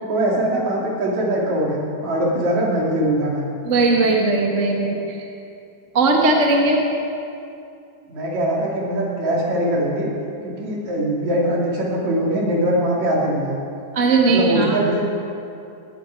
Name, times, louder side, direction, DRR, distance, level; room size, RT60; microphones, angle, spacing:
voice 1, 0.0-3.5 8.1-10.1 10.4-13.6 14.2-15.0, right 1 dB, 60° right, -3 dB, 3.9 m, -22 dB
voice 2, 3.6-5.2 5.9-6.8 13.9-14.8, right 3 dB, 35° right, 0 dB, 1.3 m, -18 dB
19.5 x 14.0 x 4.6 m, 2.5 s
omnidirectional pair, 3.7 m